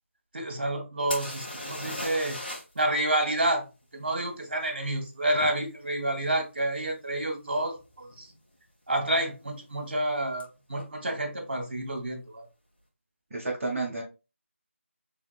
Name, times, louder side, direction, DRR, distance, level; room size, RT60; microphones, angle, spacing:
voice 1, 0.3-2.4 2.7-3.6 3.9-8.3 8.9-12.5, right 1 dB, 45° right, 1.2 m, -29 dB
sound 1, 1.1-2.8 3.1-3.2 6.6-6.7 7.3-7.5 7.8-8.4 10.4-10.5 10.8-10.9, left 1 dB, 45° left, 1.5 m, -37 dB
voice 2, 13.3-14.0, right 3 dB, 10° right, 0.5 m, -30 dB
4.9 x 3.2 x 2.3 m
figure-of-eight pair, 165°, 7 cm